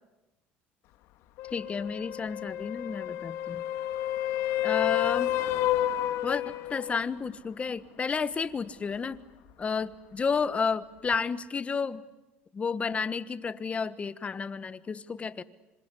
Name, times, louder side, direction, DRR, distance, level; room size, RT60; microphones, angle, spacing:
sound 1, 1.4-7.0 11.1-11.2, left 13 dB, 75° left, 1.7 m, -30 dB
voice 1, 1.5-3.6 4.6-5.3 6.2-9.2 9.6-12.0 12.5-15.4, left 5 dB, 30° left, 14 dB, 1.3 m, -31 dB
27.0 x 26.0 x 8.3 m, 1.1 s
supercardioid pair, 100°, 5 cm